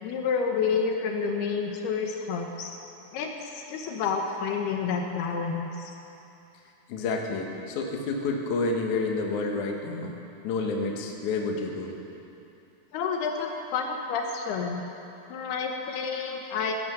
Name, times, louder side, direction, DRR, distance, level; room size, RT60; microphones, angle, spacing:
voice 1, 0.0-2.7 3.1-5.9 12.9-14.8 15.3-16.7, left 5 dB, 75° left, 2 dB, 2.9 m, -29 dB
voice 2, 6.9-10.2 10.4-12.0, left 3 dB, 60° left, 1 dB, 2.3 m, -29 dB
17.0 x 10.5 x 7.9 m, 2.9 s
omnidirectional pair, 4.8 m